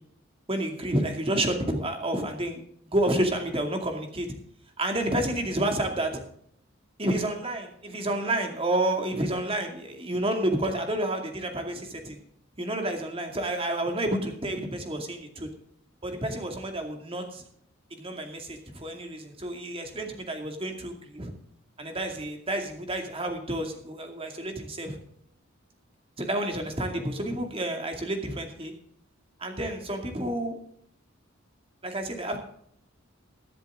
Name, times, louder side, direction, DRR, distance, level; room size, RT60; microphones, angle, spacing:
voice 1, 0.5-4.3 4.8-6.2 7.0-12.2 12.6-15.5 16.0-17.4 18.0-21.3 21.8-25.0 26.2-28.7 29.4-30.6 31.8-32.4, right 1 dB, 30° right, 4 dB, 2.4 m, -30 dB
22.0 x 7.7 x 3.7 m, 0.68 s
head